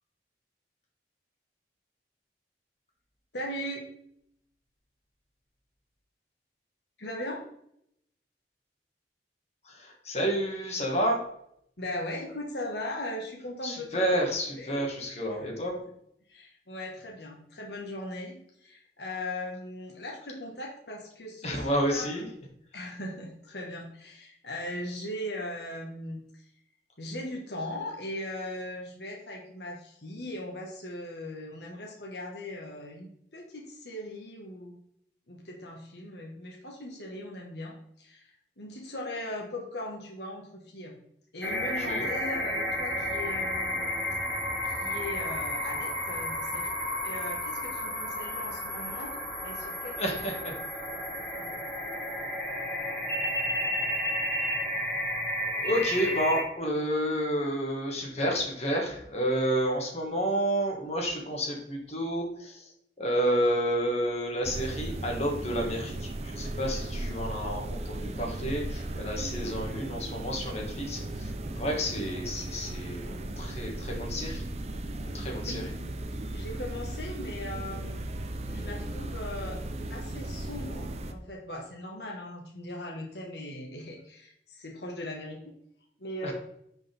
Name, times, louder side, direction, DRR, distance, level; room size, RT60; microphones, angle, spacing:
voice 1, 3.3-3.8 7.0-7.4 11.8-14.1 14.5-14.8 16.3-22.1 22.7-26.4 27.0-34.8 35.3-41.0 41.3-43.8 44.6-46.7 47.0-50.1 51.3-51.6 75.4-75.7 76.3-78.0 78.5-79.6 79.9-85.4 86.0-86.3, left 1 dB, 70° left, -1 dB, 1.6 m, -39 dB
voice 2, 9.6-11.2 13.6-15.8 21.4-22.3 41.6-42.1 50.0-50.5 55.6-62.7 63.0-74.4 75.0-75.7 86.2-86.3, equal, 35° left, 0 dB, 2.0 m, -30 dB
sound 1, 41.4-56.4, left 1 dB, 10° left, 1.9 m, -32 dB
sound 2, 64.4-81.1, right 1 dB, 35° right, 0.7 m, -36 dB
9.8 x 5.4 x 3.6 m, 0.72 s
head